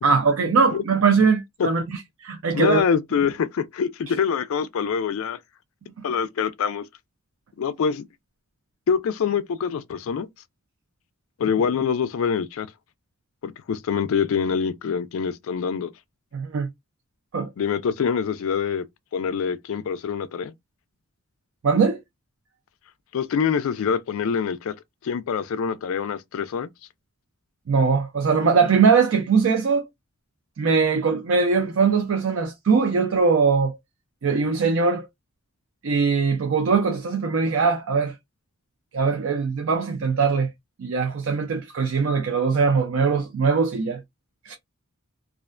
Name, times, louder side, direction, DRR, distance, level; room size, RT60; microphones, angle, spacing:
voice 1, 0.0-2.8 16.3-16.7 17.3-17.5 21.6-22.0 27.7-29.8 30.6-33.8 34.2-35.1 35.8-38.1 38.9-40.5 40.8-44.0 44.5-44.6, right 5 dB, 65° right, 0.4 m, -21 dB
voice 2, 2.5-5.4 6.0-6.8 7.6-8.0 8.9-10.3 11.4-12.7 13.4-15.9 17.6-18.8 19.1-20.5 23.1-24.7 25.0-26.7, left 6 dB, 70° left, 0.3 m, -25 dB
2.4 x 2.1 x 2.4 m
head